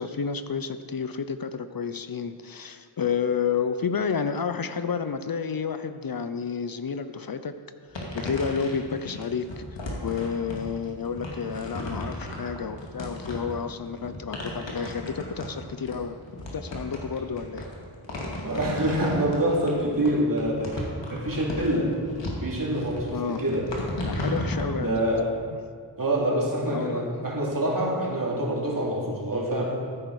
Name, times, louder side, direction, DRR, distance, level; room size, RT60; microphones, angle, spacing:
voice 1, 0.0-7.6 8.1-9.6 10.0-16.2 16.5-17.7 23.1-23.4 24.0-24.9 25.5-25.6 26.7-27.0, left 6 dB, 55° left, 11 dB, 0.6 m, -30 dB
sound 1, 7.9-24.7, left 1 dB, 85° left, 2.3 m, -35 dB
voice 2, 18.4-20.8 21.1-21.9 22.4-23.7 24.8-25.3 26.0-29.6, right 1 dB, 50° right, -3 dB, 2.8 m, -26 dB
14.5 x 9.2 x 4.8 m, 2.1 s
wide cardioid pair, 80°, 43 cm